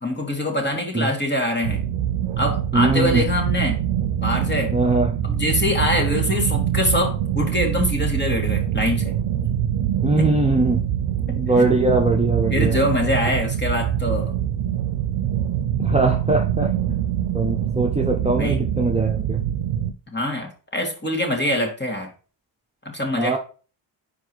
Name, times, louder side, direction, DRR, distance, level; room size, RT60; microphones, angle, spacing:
voice 1, 0.0-1.8 2.4-3.8 4.2-4.7 5.2-9.1 10.2-10.3 12.5-14.3 18.4-18.7 20.1-22.1 22.9-23.4, left 1 dB, 20° left, 2.1 m, -24 dB
sound 1, 1.6-19.9, right 10 dB, 85° right, 0.7 m, -24 dB
voice 2, 2.7-3.2 4.7-5.1 10.0-10.8 11.4-12.8 13.0-13.1 15.8-17.0 17.3-19.4 23.2-23.4, right 2 dB, 10° right, 1.0 m, -21 dB
4.8 x 4.6 x 4.6 m
cardioid pair, 65°, 48 cm